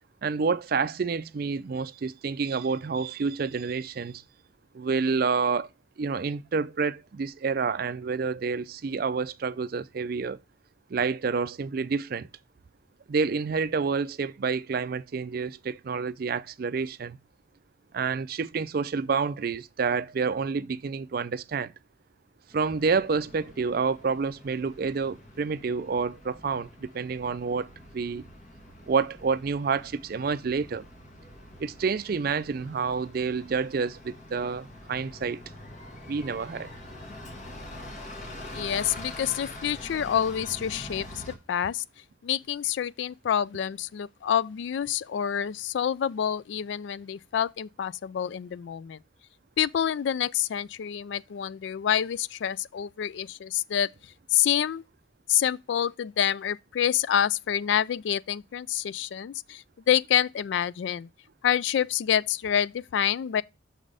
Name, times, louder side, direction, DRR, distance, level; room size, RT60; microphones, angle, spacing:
voice 1, 0.2-4.2 4.7-5.7 6.0-10.4 10.9-12.3 13.1-17.2 17.9-21.7 22.5-27.7 27.9-28.2 28.9-30.8 31.6-35.4 36.1-36.7, right 5 dB, 50° right, 0.4 m, -28 dB
Bus, 22.5-41.4, left 1 dB, 40° left, 1.5 m, -45 dB
voice 2, 38.5-41.8 42.2-49.0 49.6-53.9 54.3-54.8 55.3-61.1 61.4-63.4, left 9 dB, 65° left, 0.3 m, -27 dB
6.3 x 4.0 x 4.8 m
head